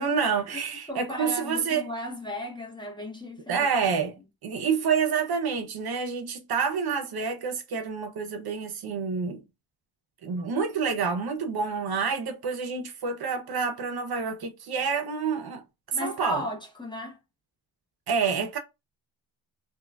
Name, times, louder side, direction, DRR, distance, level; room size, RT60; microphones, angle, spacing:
voice 1, 0.0-1.9 3.5-9.4 10.2-15.6 16.0-16.4 18.1-18.6, right 5 dB, 55° right, 0.6 m, -28 dB
voice 2, 0.9-3.7 15.9-17.2, left 1 dB, 10° left, 0.7 m, -35 dB
3.5 x 2.3 x 2.2 m
wide cardioid pair, 135°, 45 cm